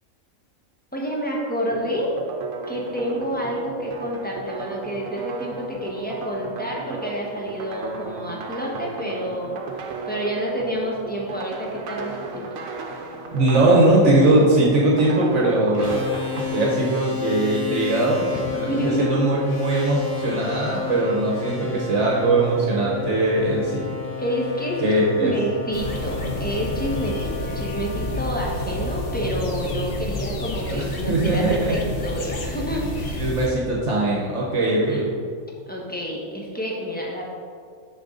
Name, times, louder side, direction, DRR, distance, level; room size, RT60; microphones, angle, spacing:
voice 1, 0.9-2.1 2.7-12.6 18.3-19.3 24.2-24.8 25.2-33.2 34.6-35.0 35.7-37.2, equal, 5° left, -3 dB, 1.1 m, -29 dB
sound 1, 1.7-16.5, right 4 dB, 75° right, 1.1 m, -35 dB
voice 2, 13.3-16.0 16.3-23.9 24.8-25.3 30.7-31.8 33.1-35.2, right 2 dB, 60° right, -3 dB, 1.4 m, -20 dB
sound 2, 15.7-30.3, left 5 dB, 75° left, 2.0 m, -32 dB
sound 3, 25.7-33.5, left 1 dB, 50° left, 0.9 m, -30 dB
6.8 x 6.4 x 3.9 m, 2.1 s
omnidirectional pair, 1.4 m